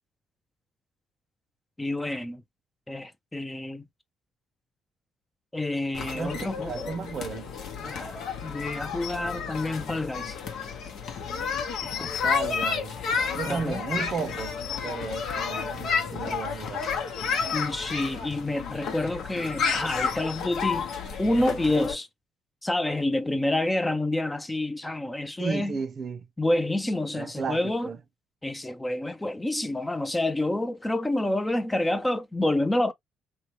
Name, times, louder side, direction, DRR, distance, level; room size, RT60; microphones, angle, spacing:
voice 1, 1.8-2.4 2.9-3.8 5.5-6.9 7.8-10.4 11.8-12.1 13.5-13.8 17.5-20.9 21.2-22.1 22.6-25.8 26.4-27.9 28.4-32.9, left 1 dB, 15° left, 0.5 m, -28 dB
sound 1, 5.9-21.9, left 6 dB, 70° left, 0.9 m, -31 dB
voice 2, 6.1-7.5 12.2-13.0 13.3-14.5 14.8-16.9 25.4-26.3 27.1-28.0, right 5 dB, 45° right, 0.6 m, -34 dB
3.1 x 2.2 x 2.9 m
cardioid pair, 90°, 0 cm